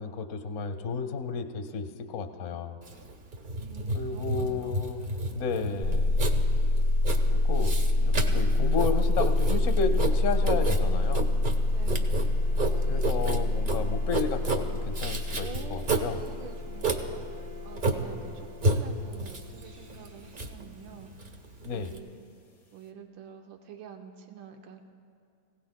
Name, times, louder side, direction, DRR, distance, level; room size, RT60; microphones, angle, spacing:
voice 1, 0.0-2.8 3.9-5.0 5.3-6.1 7.3-11.3 12.9-16.2 21.6-21.9, left 5 dB, 55° left, 7 dB, 0.9 m, -32 dB
Writing, 2.8-22.0, right 2 dB, 45° right, 0.6 m, -32 dB
voice 2, 3.5-4.7 11.7-12.2 15.4-21.3 21.7-22.1 22.7-24.8, right 7 dB, 90° right, 4 dB, 1.6 m, -47 dB
sound 1, 5.8-20.3, left 2 dB, 30° left, 0.8 m, -27 dB
23.0 x 16.5 x 2.2 m, 2.3 s
omnidirectional pair, 2.0 m